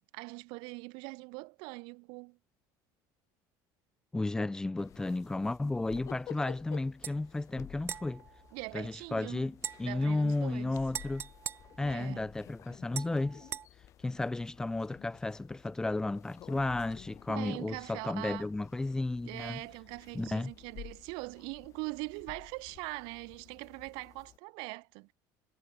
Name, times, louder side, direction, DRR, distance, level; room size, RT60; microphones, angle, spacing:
voice 1, 0.0-2.4 8.5-9.5 9.8-10.8 11.8-12.3 17.3-18.5 19.2-25.1, right 31 dB, 75° right, 3.8 m, -42 dB
voice 2, 4.1-8.2 8.7-11.3 11.8-13.5 14.0-19.7 20.1-20.5, left 2 dB, 10° left, 2.6 m, -33 dB
sound 1, 4.8-24.4, left 12 dB, 40° left, 4.5 m, -53 dB
sound 2, 7.0-7.2 7.8-9.1 9.6-12.4 12.9-13.7, right 8 dB, 30° right, 7.5 m, -43 dB
cardioid pair, 165°, 8 cm